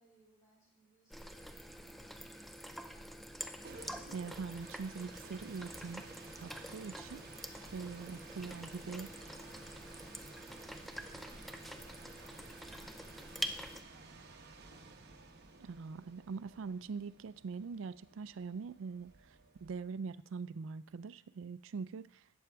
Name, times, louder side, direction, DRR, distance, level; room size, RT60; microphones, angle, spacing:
voice 1, 0.0-3.6 9.3-14.8, equal, 15° left, -6 dB, 3.6 m, -69 dB
sound 1, 1.1-13.8, equal, ahead, 0.4 m, -46 dB
sound 2, 3.4-20.1, right 3 dB, 55° right, 0.9 m, -55 dB
voice 2, 4.1-6.0 6.4-7.4 7.7-9.1 15.6-19.4 19.6-22.2, right 5 dB, 70° right, 16 dB, 0.4 m, -43 dB
11.5 x 8.6 x 3.4 m, 0.74 s
head